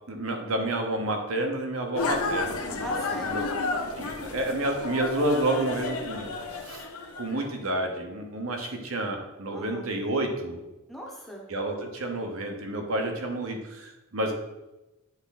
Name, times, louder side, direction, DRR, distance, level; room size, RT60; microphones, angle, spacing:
voice 1, 0.1-2.8 3.2-3.4 4.0-6.8 7.2-10.6 11.5-14.3, right 1 dB, 75° right, 3 dB, 1.0 m, -30 dB
sound 1, 1.9-7.5, left 3 dB, 85° left, 0.7 m, -32 dB
voice 2, 2.8-3.5 9.5-9.9 10.9-11.5, left 1 dB, ahead, -1 dB, 0.9 m, -39 dB
8.0 x 3.5 x 4.1 m, 1.0 s
head